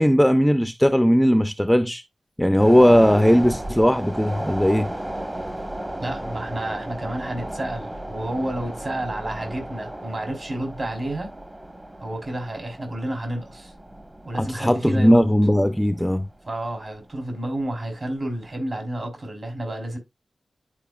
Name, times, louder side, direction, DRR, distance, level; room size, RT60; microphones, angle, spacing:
voice 1, 0.0-2.0 2.4-4.9 14.4-16.3, equal, 5° left, 0.5 m, -18 dB
sound 1, 2.6-17.2 17.5-17.7, right 1 dB, 25° right, 1.1 m, -35 dB
voice 2, 6.0-11.3 12.0-13.7 14.2-15.3 16.5-20.0, right 1 dB, 50° right, 3.4 m, -30 dB
11.0 x 4.6 x 2.3 m
cardioid pair, 65°, 0 cm